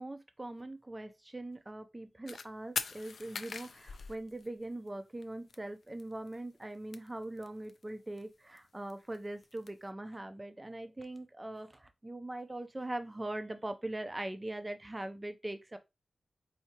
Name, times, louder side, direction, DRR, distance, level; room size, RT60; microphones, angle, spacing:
voice 1, 0.0-15.8, right 1 dB, 20° right, 0.5 m, -41 dB
sound 1, 2.3-2.5 2.8-4.9 5.2-5.3 5.5-5.6 5.8-6.3 6.6-7.8 8.2-9.7, left 5 dB, 75° left, 0.3 m, -41 dB
4.5 x 2.8 x 2.8 m
wide cardioid pair, 95°, 0 cm